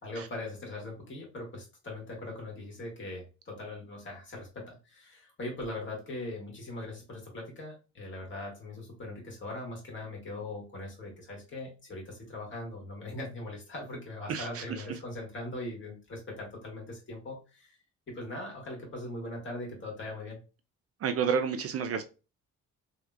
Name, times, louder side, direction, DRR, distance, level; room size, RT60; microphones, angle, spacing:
voice 1, 0.0-17.8 18.1-20.4, left 2 dB, 40° left, -2 dB, 1.8 m, -40 dB
voice 2, 14.3-14.6 21.0-22.0, right 6 dB, 50° right, 8 dB, 0.5 m, -30 dB
3.4 x 2.9 x 2.4 m, 0.33 s
cardioid pair, 90°, 30 cm